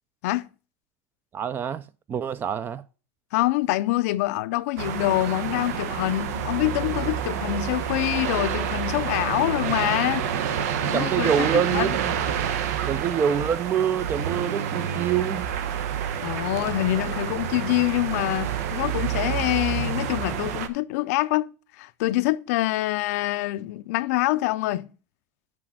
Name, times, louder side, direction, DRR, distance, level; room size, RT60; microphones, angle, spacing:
voice 1, 1.3-1.8 2.1-2.8 10.8-12.1 12.9-15.5, right 8 dB, 25° right, 0.4 m, -26 dB
voice 2, 3.3-10.3 10.8-12.0 16.2-24.9, left 17 dB, 80° left, 0.5 m, -25 dB
sound 1, 4.8-20.7, right 8 dB, 85° right, 0.9 m, -28 dB
6.1 x 6.0 x 6.1 m
supercardioid pair, 150°, 8 cm